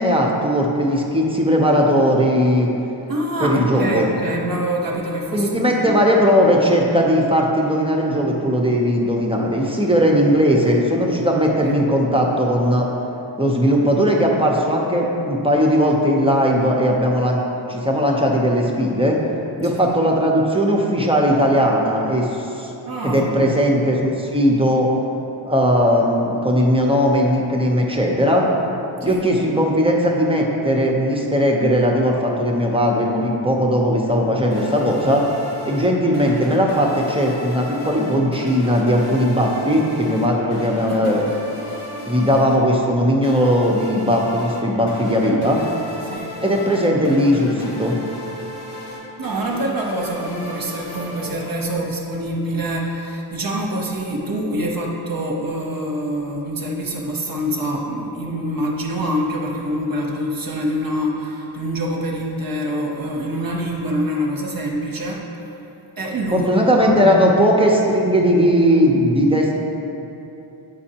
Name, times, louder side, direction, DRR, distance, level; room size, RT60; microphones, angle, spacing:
voice 1, 0.0-2.7 3.4-4.1 5.3-12.9 13.4-17.4 17.7-19.2 19.6-22.7 23.0-24.9 25.4-28.5 29.0-35.3 35.6-41.2 42.1-45.6 46.4-48.0 66.3-69.6, equal, 10° right, -1 dB, 0.7 m, -18 dB
voice 2, 3.1-6.0 11.6-11.8 19.6-19.7 22.9-23.3 29.0-29.3 40.9-41.3 46.0-46.4 49.2-65.3 66.0-67.2, right 1 dB, 45° right, -1 dB, 0.8 m, -25 dB
sound 1, 34.5-51.9, left 1 dB, 90° left, 1.1 m, -35 dB
7.6 x 5.3 x 2.8 m, 3.0 s
cardioid pair, 80°, 49 cm